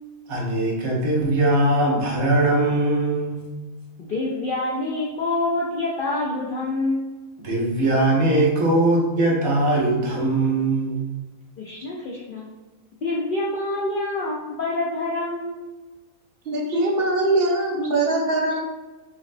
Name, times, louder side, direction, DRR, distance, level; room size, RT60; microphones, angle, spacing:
voice 1, 0.3-3.4 7.4-11.1, right 2 dB, 80° right, -3 dB, 1.3 m, -21 dB
voice 2, 4.0-7.2 11.6-12.5 13.0-15.6, left 2 dB, 65° left, -4 dB, 0.5 m, -26 dB
voice 3, 16.5-18.6, right 2 dB, 60° right, 0 dB, 0.7 m, -22 dB
5.4 x 2.1 x 2.5 m, 1.2 s
omnidirectional pair, 1.4 m